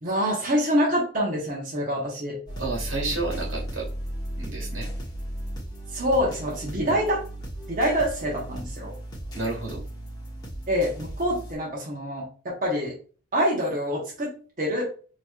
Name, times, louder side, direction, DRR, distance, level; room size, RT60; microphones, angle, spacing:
voice 1, 0.0-2.4 5.9-7.2 7.7-8.9 10.7-12.9 13.3-14.8, equal, 45° right, -3 dB, 0.9 m, -26 dB
Beat Background Music Loop, 2.5-11.5, right 1 dB, 20° left, 1.0 m, -36 dB
voice 2, 2.5-3.9 4.4-4.9 6.8-7.0 9.3-9.8, right 3 dB, 80° right, -2 dB, 1.6 m, -31 dB
4.5 x 3.0 x 2.3 m, 0.40 s
head